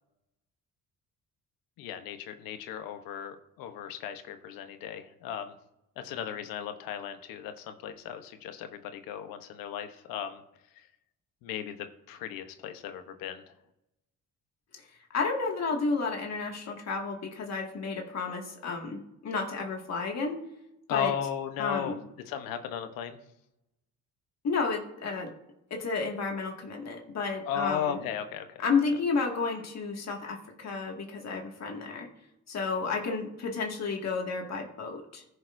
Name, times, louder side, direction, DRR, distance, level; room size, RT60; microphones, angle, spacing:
voice 1, 1.8-5.5 6.0-10.4 11.4-13.4 20.9-22.0 22.3-23.2 27.5-28.6, left 9 dB, 90° left, 8 dB, 1.0 m, -36 dB
voice 2, 15.1-20.4 20.9-21.1 21.6-22.0 24.4-25.3 25.7-28.0 28.6-32.1 32.5-35.2, left 4 dB, 50° left, 1 dB, 2.1 m, -31 dB
14.5 x 6.5 x 2.7 m, 0.86 s
cardioid pair, 80°, 33 cm